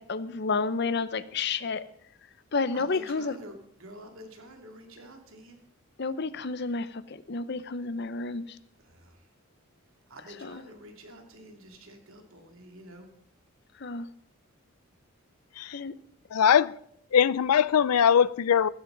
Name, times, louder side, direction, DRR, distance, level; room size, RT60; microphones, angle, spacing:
voice 1, 0.0-1.8 2.5-3.4 6.0-8.6 10.3-10.6 13.8-14.1 15.7-15.9 16.3-16.4, left 4 dB, 50° left, 0.6 m, -31 dB
voice 2, 2.7-5.6 8.9-9.2 10.1-13.1, right 1 dB, 65° right, 2.6 m, -48 dB
voice 3, 16.3-16.8 17.1-18.7, left 8 dB, 90° left, 0.4 m, -21 dB
15.5 x 13.5 x 3.9 m
head